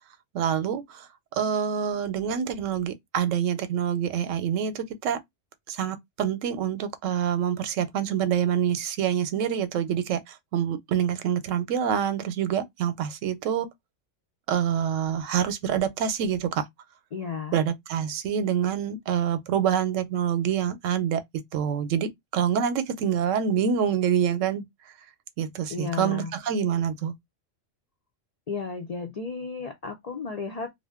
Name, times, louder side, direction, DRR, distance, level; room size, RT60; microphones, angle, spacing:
voice 1, 0.3-1.1 1.3-5.2 5.7-13.7 14.5-16.6 17.5-21.2 21.5-24.6 25.4-27.1, right 8 dB, 85° right, 1.0 m, -26 dB
voice 2, 17.1-17.6 25.7-26.3 28.5-30.7, left 5 dB, 65° left, 0.4 m, -33 dB
2.5 x 2.1 x 3.3 m
omnidirectional pair, 1.3 m